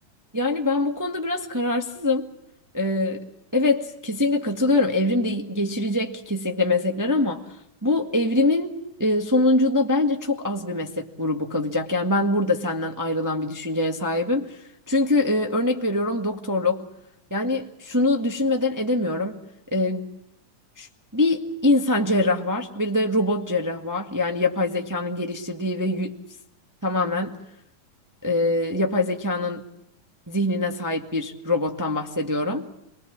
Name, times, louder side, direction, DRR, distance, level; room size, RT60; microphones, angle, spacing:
voice 1, 0.3-2.3 2.7-3.2 3.5-7.4 7.8-16.8 17.3-19.4 19.7-20.0 20.8-20.9 21.1-26.1 26.8-27.4 28.2-29.6 30.3-32.7, left 2 dB, 10° right, 3 dB, 1.0 m, -24 dB
29.0 x 23.5 x 7.4 m, 0.80 s
omnidirectional pair, 3.6 m